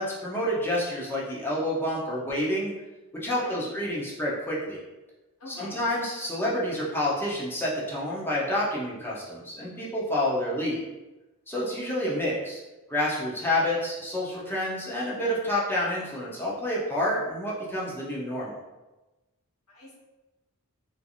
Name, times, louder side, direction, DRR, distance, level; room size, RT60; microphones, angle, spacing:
voice 1, 0.0-2.7 3.1-4.8 5.5-10.8 11.5-12.6 12.9-18.6, left 1 dB, 10° left, -6 dB, 0.6 m, -28 dB
voice 2, 5.4-5.9 19.7-19.9, left 1 dB, 75° left, -4 dB, 1.0 m, -44 dB
3.2 x 2.5 x 2.4 m, 1.1 s
head